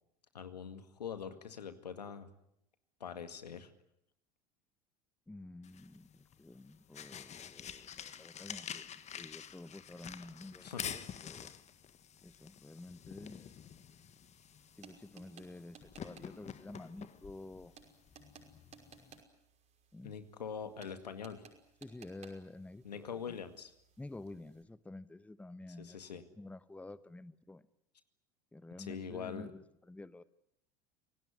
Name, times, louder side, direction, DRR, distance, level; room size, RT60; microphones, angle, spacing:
voice 1, 0.3-2.3 3.0-3.7 10.6-10.9 20.0-21.4 22.8-23.7 25.8-26.2 28.8-29.5, left 7 dB, 85° left, 10 dB, 2.1 m, -43 dB
voice 2, 5.3-10.7 10.9-11.5 12.2-13.5 14.8-17.7 19.9-20.1 21.8-23.4 24.0-27.6 28.5-30.2, left 2 dB, 5° left, 17 dB, 1.0 m, -50 dB
sound 1, 5.6-19.2, left 8 dB, 35° left, 1.5 m, -48 dB
sound 2, 13.1-24.6, right 6 dB, 35° right, 5.7 m, -61 dB
27.5 x 18.0 x 9.7 m, 0.78 s
figure-of-eight pair, 75°, 20 cm